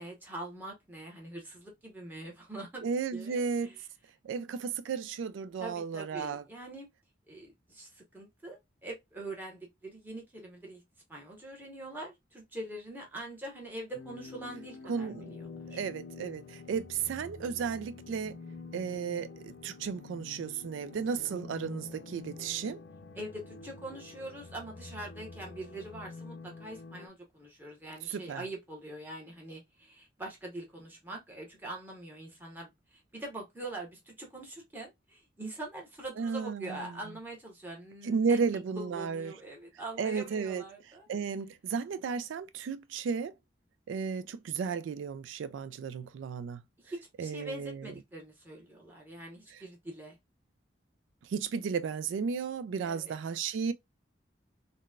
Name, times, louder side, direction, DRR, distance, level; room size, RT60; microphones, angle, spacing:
voice 1, 0.0-3.8 5.6-6.9 7.3-10.8 11.1-15.4 15.7-15.8 23.1-38.4 38.7-41.1 46.8-50.2 52.8-53.2, right 2 dB, 10° right, 1.0 m, -43 dB
voice 2, 2.8-3.7 4.2-6.4 14.9-15.4 15.7-18.4 18.7-22.8 28.1-28.4 36.2-36.9 38.0-39.3 40.0-40.6 41.1-43.3 43.9-46.6 47.2-47.9 49.5-49.6 51.2-53.7, right 6 dB, 90° right, 0.3 m, -34 dB
sound 1, 13.9-27.1, left 3 dB, 60° left, 0.5 m, -47 dB
3.9 x 2.2 x 2.3 m
head